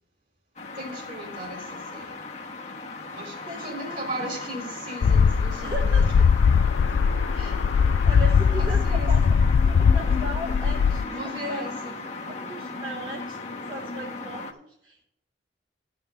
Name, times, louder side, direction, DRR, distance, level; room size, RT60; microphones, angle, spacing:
sound 1, 0.6-14.5, left 3 dB, 40° left, 1.0 m, -36 dB
voice 1, 0.7-2.2 3.1-6.0 7.3-7.7 8.6-9.3 11.1-12.0, right 1 dB, 45° right, 3.0 m, -37 dB
voice 2, 3.5-4.1 5.6-6.3 7.2-9.4 9.6-11.6 12.5-15.0, right 1 dB, 25° right, 1.1 m, -38 dB
sound 2, 5.0-11.0, left 6 dB, 80° left, 0.3 m, -20 dB
12.0 x 5.6 x 6.1 m
head